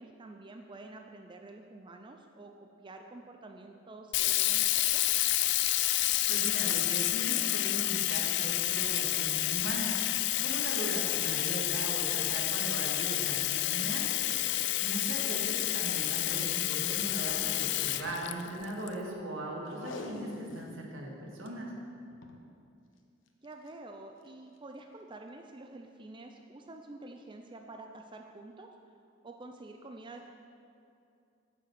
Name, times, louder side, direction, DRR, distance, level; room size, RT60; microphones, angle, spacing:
voice 1, 0.0-5.0 15.1-15.4 23.4-28.7 29.2-30.3, right 2 dB, 25° right, 4 dB, 0.5 m, -48 dB
Sink (filling or washing), 4.1-18.9, left 15 dB, 65° left, 0.4 m, -29 dB
voice 2, 6.0-14.1 14.8-21.7, right 1 dB, 80° right, -1 dB, 2.1 m, -39 dB
Packing tape duct tape, 19.7-20.8 21.2-21.3 21.5-21.6 22.1-22.4 23.4-23.7 24.3-24.4, left 2 dB, 85° left, 1.0 m, -43 dB
9.5 x 6.6 x 7.7 m, 2.5 s
head